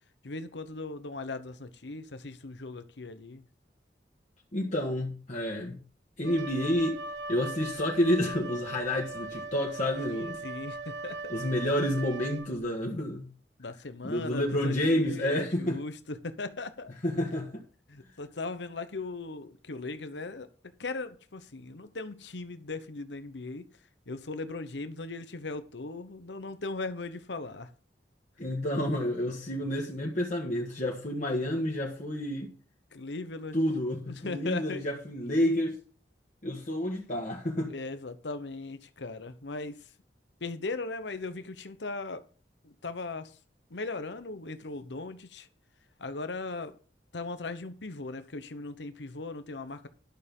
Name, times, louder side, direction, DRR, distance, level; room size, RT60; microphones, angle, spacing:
voice 1, 0.2-3.4 10.4-11.3 13.6-16.9 17.9-20.5 20.8-23.6 24.1-27.7 32.9-33.7 34.1-34.9 37.7-39.9 40.4-42.2 42.6-43.4 43.7-45.5 46.0-46.8 47.1-49.9, left 3 dB, 85° left, 1.0 m, -38 dB
voice 2, 4.5-5.8 6.2-7.0 7.3-10.4 11.3-13.3 14.0-15.8 17.0-17.6 28.4-32.5 33.5-35.8 36.4-37.7, left 1 dB, 45° left, 1.7 m, -29 dB
Wind instrument woodwind instrument, 6.2-12.8, right 3 dB, 85° right, 1.1 m, -39 dB
11.5 x 6.7 x 5.4 m
head